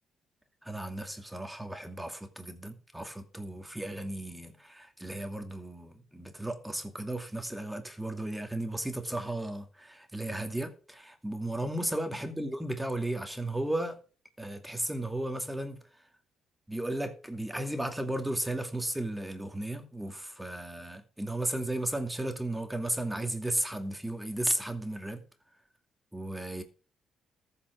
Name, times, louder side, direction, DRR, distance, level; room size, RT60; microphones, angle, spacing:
voice 1, 0.6-14.0 14.4-15.8 16.7-25.2 26.1-26.6, right 1 dB, 5° right, 2.4 m, -35 dB
14.5 x 5.9 x 6.2 m
cardioid pair, 90°, 0 cm